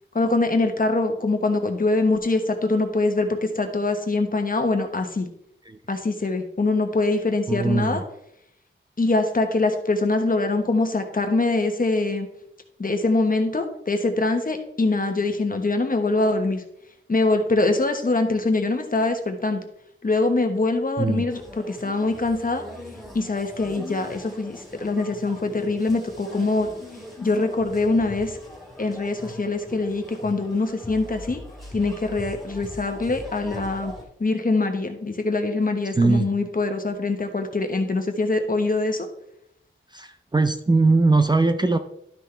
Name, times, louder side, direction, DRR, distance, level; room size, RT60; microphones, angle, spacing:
voice 1, 0.1-5.3 5.9-8.0 9.0-12.3 12.8-16.6 17.1-19.6 20.0-21.4 21.7-22.6 23.1-26.7 27.2-28.4 28.8-31.4 31.7-33.9 34.2-39.1, left 3 dB, 40° left, 5 dB, 1.2 m, -23 dB
voice 2, 7.5-8.0 21.0-21.3 35.9-36.3 39.9-41.8, right 3 dB, 20° right, 8 dB, 0.5 m, -20 dB
sound 1, 21.3-34.0, left 1 dB, ahead, 2.7 m, -40 dB
12.0 x 5.9 x 3.3 m, 0.76 s
wide cardioid pair, 95°, 21 cm